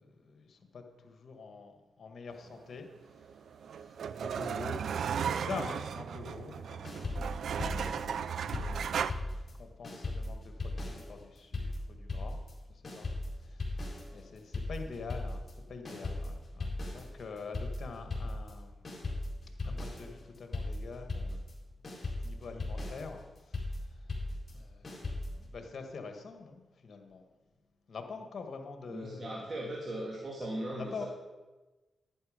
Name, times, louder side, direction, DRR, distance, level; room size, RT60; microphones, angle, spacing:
voice 1, 0.0-4.8 5.3-7.1 7.5-9.3 9.6-12.4 12.7-18.9 19.6-21.4 22.2-24.1 24.5-27.3 27.9-29.5 30.7-31.1, left 4 dB, 60° left, 5 dB, 1.7 m, -46 dB
sound 1, 3.2-9.1, right 7 dB, 75° right, 0.4 m, -35 dB
sound 2, 6.8-9.6 9.8-25.5, left 2 dB, 45° left, 4.3 m, -38 dB
voice 2, 28.9-31.1, right 1 dB, 50° right, -3 dB, 2.7 m, -38 dB
11.0 x 9.8 x 5.1 m, 1.2 s
supercardioid pair, 50°, 0 cm